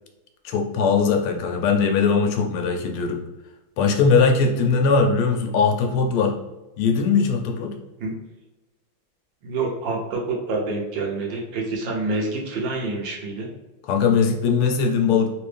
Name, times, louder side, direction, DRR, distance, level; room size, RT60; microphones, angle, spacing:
voice 1, 0.4-3.2 3.8-6.4 6.8-7.8 13.9-15.3, left 5 dB, 85° left, 3 dB, 1.5 m, -20 dB
voice 2, 9.4-13.5, right 3 dB, 70° right, -1 dB, 1.4 m, -27 dB
3.9 x 2.6 x 3.3 m, 1.0 s
omnidirectional pair, 2.3 m